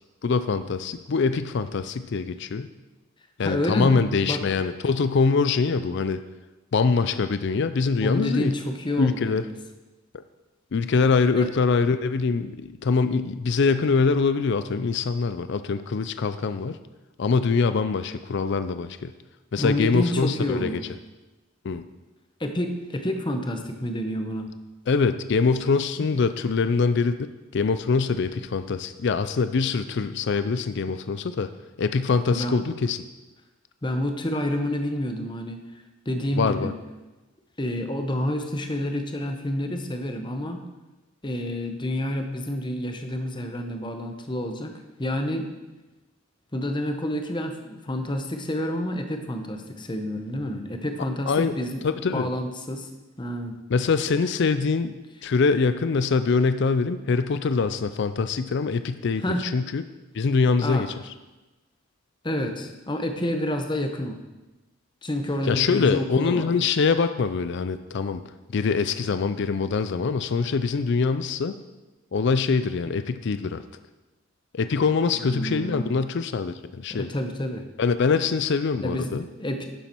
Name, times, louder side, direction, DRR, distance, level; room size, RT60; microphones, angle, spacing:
voice 1, 0.2-2.7 3.4-6.2 6.7-8.5 9.0-9.4 10.1-10.2 10.7-16.8 17.2-19.1 19.5-20.8 21.6-21.8 24.9-27.1 27.5-31.5 31.8-33.0 36.4-36.7 51.3-51.5 51.8-52.3 53.7-54.9 55.2-59.8 60.1-60.9 65.5-68.2 68.5-71.5 72.1-73.6 74.5-77.1 77.8-79.2, left 4 dB, 55° left, 11 dB, 0.4 m, -24 dB
voice 2, 3.4-4.4 8.0-9.6 11.4-11.5 19.6-20.9 22.4-24.5 26.0-26.1 32.3-32.6 33.8-35.6 36.0-36.7 37.6-40.6 41.2-44.7 45.0-45.5 46.5-51.9 52.1-52.9 53.2-53.6 59.2-59.5 60.6-60.9 62.2-64.2 65.0-66.5 75.2-75.9 76.9-77.7 78.8-79.7, left 1 dB, 20° left, 5 dB, 0.9 m, -29 dB
11.0 x 7.1 x 4.5 m, 1.1 s
head